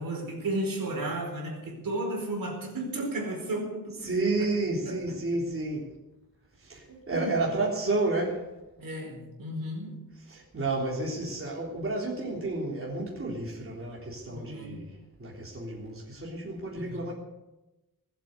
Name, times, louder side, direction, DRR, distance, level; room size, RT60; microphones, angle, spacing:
voice 1, 0.0-4.1 4.4-4.5 4.8-5.2 7.1-7.5 8.8-10.0 14.3-14.9 16.7-17.1, right 1 dB, 65° right, 0 dB, 4.8 m, -34 dB
voice 2, 4.0-5.8 6.6-8.5 10.3-14.8 15.2-17.1, right 2 dB, 35° right, -4 dB, 3.7 m, -31 dB
20.5 x 8.2 x 8.0 m, 1.0 s
wide cardioid pair, 160°, 37 cm